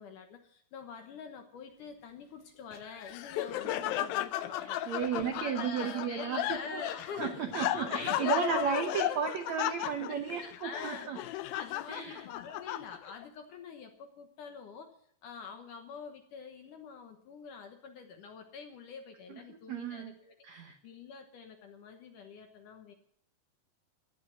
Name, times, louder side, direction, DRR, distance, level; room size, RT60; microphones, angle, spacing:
voice 1, 0.0-4.9 5.3-8.7 10.4-14.9 15.2-20.4 20.8-22.9, left 5 dB, 65° left, 5 dB, 2.2 m, -46 dB
Laughter, 2.7-13.2, left 13 dB, 80° left, 2.1 m, -35 dB
voice 2, 4.6-6.8 7.2-11.2 11.9-12.2 19.3-20.1 20.4-20.8, right 7 dB, 85° right, 6 dB, 1.5 m, -34 dB
14.5 x 11.0 x 6.1 m, 0.65 s
omnidirectional pair, 4.9 m